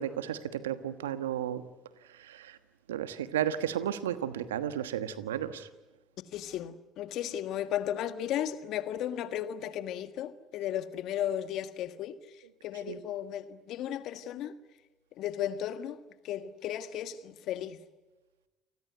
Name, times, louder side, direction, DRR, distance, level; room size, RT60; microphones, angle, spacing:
voice 1, 0.0-1.6 2.2-2.6 2.9-5.7 12.9-13.0, right 10 dB, 85° right, 1.3 m, -33 dB
voice 2, 6.3-14.6 15.2-17.8, left 11 dB, 65° left, 1.6 m, -35 dB
28.5 x 19.5 x 9.5 m
hypercardioid pair, 60°, 0 cm